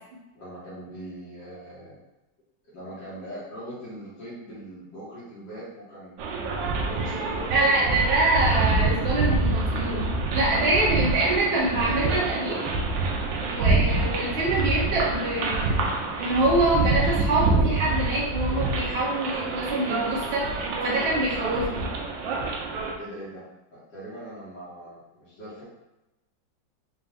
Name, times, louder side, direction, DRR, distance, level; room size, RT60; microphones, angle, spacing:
voice 1, 0.3-2.0 2.7-6.2 6.8-7.7 23.0-23.4 23.7-25.6, equal, 70° left, -9 dB, 1.9 m, -40 dB
sound 1, 6.2-22.9, right 3 dB, 75° right, 1.2 m, -26 dB
voice 2, 7.5-12.6 13.5-15.8 16.2-21.9, right 2 dB, 40° right, -6 dB, 1.1 m, -25 dB
4.9 x 2.3 x 3.5 m, 0.97 s
omnidirectional pair, 2.1 m